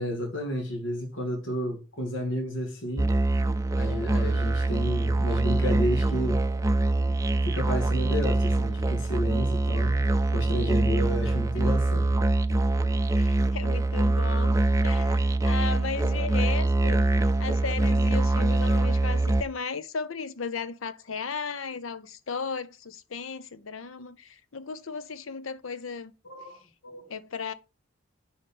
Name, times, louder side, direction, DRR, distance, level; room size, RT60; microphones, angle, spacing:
voice 1, 0.0-3.1 3.7-6.4 7.4-10.0 10.3-12.1 26.2-27.1, equal, 70° left, 2.0 m, -31 dB
Musical instrument, 3.0-19.4, right 2 dB, 15° right, 0.4 m, -24 dB
voice 2, 13.2-14.6 14.8-17.0 17.4-26.1 27.1-27.5, left 5 dB, 85° left, 0.7 m, -35 dB
6.7 x 5.2 x 5.4 m
head